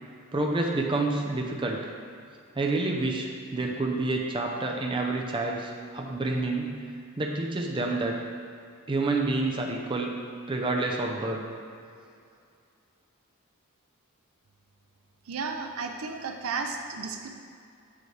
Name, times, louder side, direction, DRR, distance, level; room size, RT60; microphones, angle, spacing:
voice 1, 0.3-1.8 2.5-6.8 7.2-8.2 8.9-10.2 10.5-11.4, right 2 dB, 25° right, 0 dB, 0.5 m, -28 dB
voice 2, 15.3-17.3, right 4 dB, 70° right, 4 dB, 0.5 m, -33 dB
7.8 x 3.2 x 4.6 m, 2.4 s
head